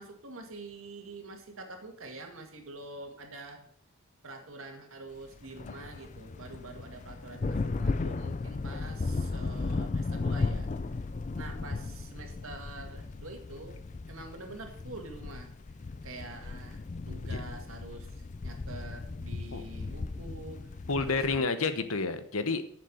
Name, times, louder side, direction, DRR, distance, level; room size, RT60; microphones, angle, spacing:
voice 1, 0.0-3.7 4.2-10.7 11.4-13.8 14.1-15.5 16.0-18.2 18.4-20.7 21.0-21.7, right 2 dB, 75° right, 4 dB, 1.9 m, -46 dB
sound 1, 5.4-21.4, left 3 dB, 35° left, 0.4 m, -36 dB
voice 2, 20.9-22.6, left 4 dB, 85° left, 10 dB, 1.1 m, -29 dB
7.8 x 7.3 x 7.0 m, 0.65 s
head